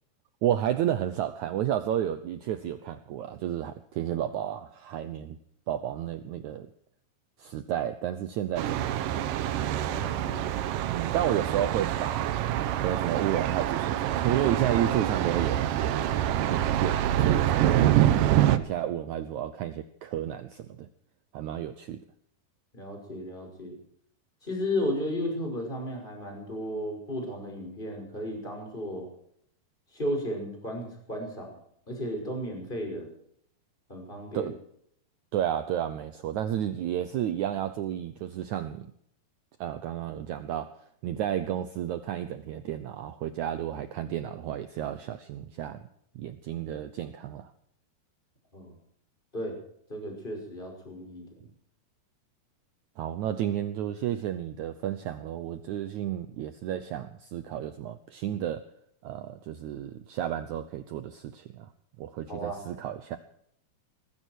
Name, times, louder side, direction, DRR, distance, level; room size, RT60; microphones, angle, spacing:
voice 1, 0.4-5.4 5.7-6.7 7.4-9.2 10.9-12.4 12.8-16.0 16.5-17.8 18.2-20.9 21.3-22.0 34.3-34.5 35.3-38.9 39.6-40.8 41.0-45.8 46.2-47.5 53.0-58.7 59.0-61.7 62.0-63.2, right 11 dB, 90° right, 11 dB, 1.6 m, -31 dB
Thunder, 8.6-18.6, right 12 dB, 70° right, 2.3 m, -26 dB
voice 2, 9.8-10.6 22.7-23.8 24.4-29.1 29.9-31.6 31.9-33.1 33.9-34.5 48.5-48.8 49.3-49.6 49.9-51.5 62.3-62.6, equal, 10° left, 3 dB, 5.7 m, -34 dB
19.5 x 16.0 x 4.5 m, 0.70 s
omnidirectional pair, 4.5 m